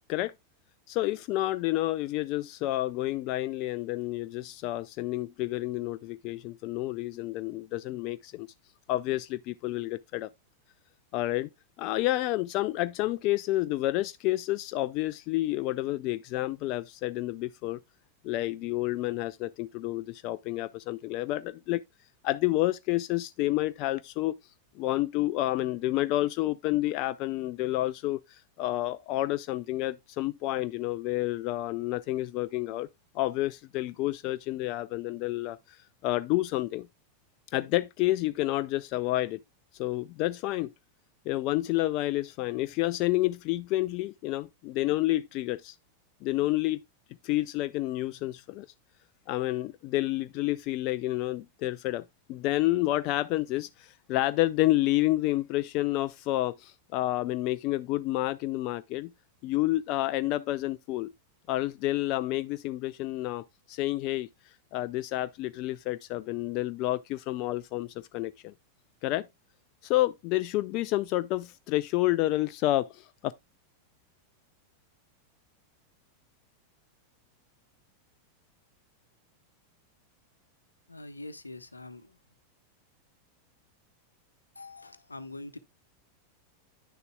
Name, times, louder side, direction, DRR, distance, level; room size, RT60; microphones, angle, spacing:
voice 1, 0.9-8.5 8.9-10.3 11.1-11.5 11.8-17.8 18.2-21.8 22.2-24.4 24.8-32.9 33.1-36.9 37.5-39.4 39.7-40.7 41.3-45.8 46.2-46.8 47.2-48.7 49.3-59.1 59.4-61.1 61.5-64.3 64.7-68.5 69.0-69.3 69.8-73.3, left 16 dB, 40° left, 0.3 m, -29 dB
voice 2, 80.9-82.2 84.6-85.6, left 2 dB, 80° left, 0.8 m, -44 dB
10.0 x 6.7 x 2.2 m
figure-of-eight pair, 90°, 0 cm